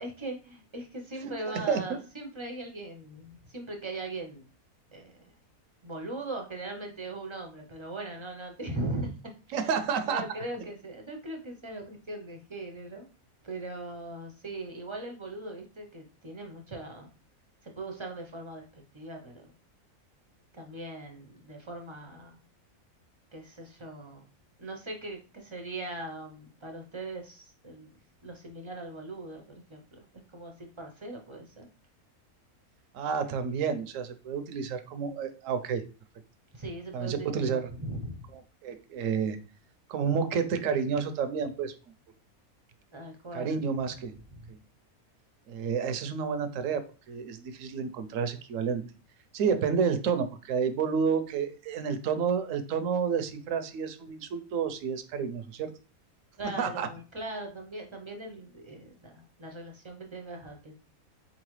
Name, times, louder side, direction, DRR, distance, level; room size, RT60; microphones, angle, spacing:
voice 1, 0.0-4.5 4.9-5.1 5.8-9.1 9.5-9.7 10.0-13.1 13.4-17.1 17.6-19.5 20.5-22.4 23.3-24.2 24.6-27.9 28.2-30.0 30.3-31.7 36.5-38.2 42.9-43.6 44.3-44.5 56.4-60.7, right 2 dB, 35° right, 3 dB, 0.5 m, -40 dB
voice 2, 9.5-10.2 32.9-35.8 36.9-37.7 38.6-39.4 39.9-41.7 43.3-44.1 45.5-48.8 49.3-55.7 56.6-56.9, right 6 dB, 70° right, 10 dB, 0.9 m, -30 dB
4.2 x 3.9 x 3.1 m, 0.35 s
omnidirectional pair, 1.6 m